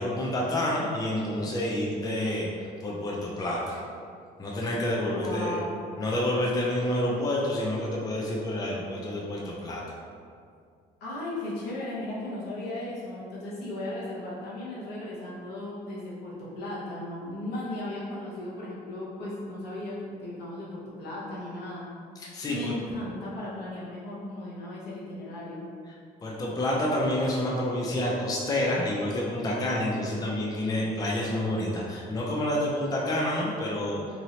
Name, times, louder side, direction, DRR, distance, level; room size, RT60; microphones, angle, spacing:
voice 1, 0.0-3.8 4.4-5.6 6.0-10.0 22.2-23.0 25.9-26.0 26.2-34.2, left 1 dB, 20° left, -3 dB, 0.5 m, -29 dB
voice 2, 5.0-5.9 11.0-21.9 22.5-25.7, left 1 dB, 80° left, -7 dB, 1.0 m, -36 dB
3.0 x 2.7 x 2.8 m, 2.2 s
cardioid pair, 110°, 17 cm